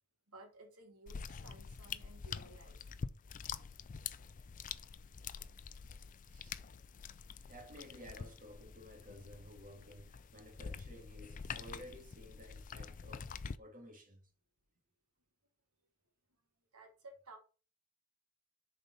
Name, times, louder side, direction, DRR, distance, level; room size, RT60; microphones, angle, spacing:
voice 1, 0.3-2.9 16.7-17.4, right 2 dB, 70° right, 1.5 m, -56 dB
sound 1, 1.1-13.6, left 6 dB, 35° left, 0.4 m, -46 dB
voice 2, 6.2-6.6 7.5-14.2, equal, 35° right, 2.0 m, -54 dB
6.9 x 4.3 x 5.3 m
head